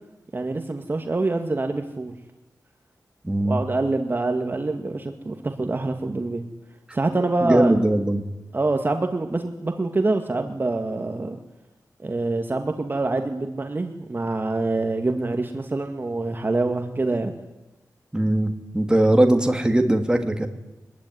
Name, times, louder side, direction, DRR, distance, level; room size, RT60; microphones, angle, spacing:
voice 1, 0.3-2.1 3.4-6.4 6.9-7.7 8.5-11.4 12.0-17.4, right 2 dB, 30° right, 5 dB, 2.0 m, -25 dB
voice 2, 3.2-3.6 7.4-8.2 18.1-20.5, right 1 dB, 10° right, 5 dB, 2.8 m, -20 dB
24.0 x 20.5 x 9.6 m, 1.0 s
wide cardioid pair, 105°, 7 cm